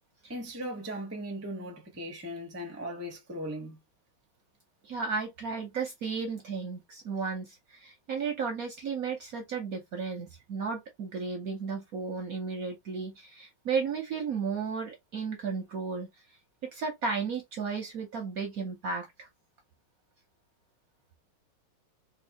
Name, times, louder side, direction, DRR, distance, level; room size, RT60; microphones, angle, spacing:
voice 1, 0.3-3.8, equal, 15° right, 0.5 m, -38 dB
voice 2, 4.8-16.1 16.6-19.3, right 5 dB, 60° right, 1.0 m, -34 dB
3.5 x 2.8 x 2.8 m
omnidirectional pair, 2.3 m